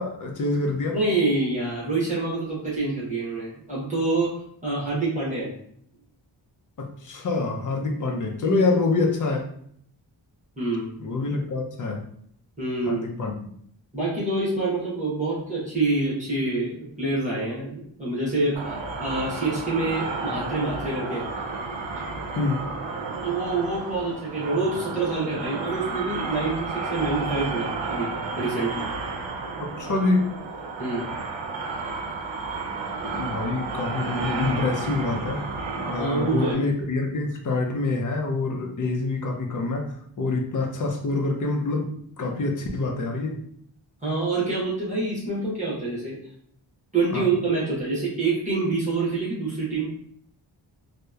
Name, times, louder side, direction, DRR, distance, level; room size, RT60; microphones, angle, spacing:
voice 1, 0.0-1.0 6.8-9.5 11.0-12.0 12.9-13.5 22.3-22.6 29.6-30.3 33.0-35.5 35.8-39.9 40.2-43.4 47.1-47.3, left 3 dB, 45° left, 1 dB, 0.5 m, -26 dB
voice 2, 0.9-4.3 4.6-5.5 10.6-10.9 12.6-13.1 13.9-21.3 23.2-28.1 28.4-28.9 30.8-31.1 36.0-36.6 40.1-40.4 44.0-46.2 46.9-49.9, right 3 dB, 15° right, -8 dB, 0.9 m, -26 dB
sound 1, 18.5-36.5, right 3 dB, 75° right, 0.6 m, -32 dB
2.8 x 2.1 x 2.3 m, 0.65 s
wide cardioid pair, 110°, 46 cm